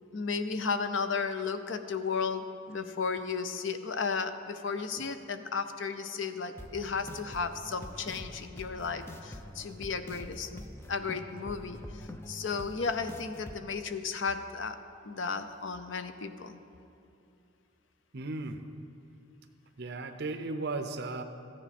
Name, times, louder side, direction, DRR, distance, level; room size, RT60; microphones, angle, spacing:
voice 1, 0.1-14.8 15.0-16.6, left 5 dB, 65° left, 10 dB, 0.6 m, -34 dB
sound 1, 6.6-13.6, left 1 dB, 10° left, 0.4 m, -45 dB
voice 2, 18.1-18.6 19.8-21.2, right 3 dB, 55° right, 8 dB, 0.7 m, -35 dB
14.0 x 9.9 x 4.2 m, 2.7 s
head